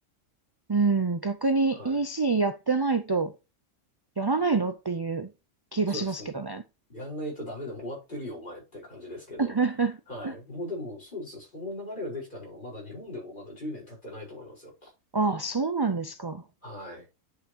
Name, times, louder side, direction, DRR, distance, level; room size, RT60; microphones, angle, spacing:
voice 1, 0.7-3.3 4.2-5.3 5.7-6.6 9.4-10.0 10.2-10.3 15.1-16.4, right 4 dB, 40° right, 0.3 m, -26 dB
voice 2, 1.7-2.0 5.9-6.4 6.9-9.6 10.1-14.9 16.6-17.1, left 1 dB, 40° left, 4.9 m, -39 dB
9.6 x 5.7 x 2.8 m
omnidirectional pair, 1.3 m